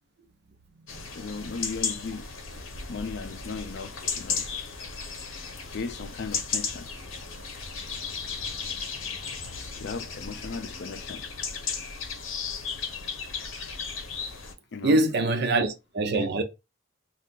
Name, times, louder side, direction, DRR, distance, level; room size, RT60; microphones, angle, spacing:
sound 1, 0.9-14.5, left 5 dB, 80° left, 0.8 m, -35 dB
voice 1, 1.1-2.3 2.9-4.5 5.7-6.9 9.8-11.2 14.7-15.0 16.1-16.3, left 4 dB, 55° left, 0.4 m, -36 dB
voice 2, 14.8-16.4, right 2 dB, 55° right, 0.5 m, -24 dB
2.5 x 2.3 x 3.6 m
head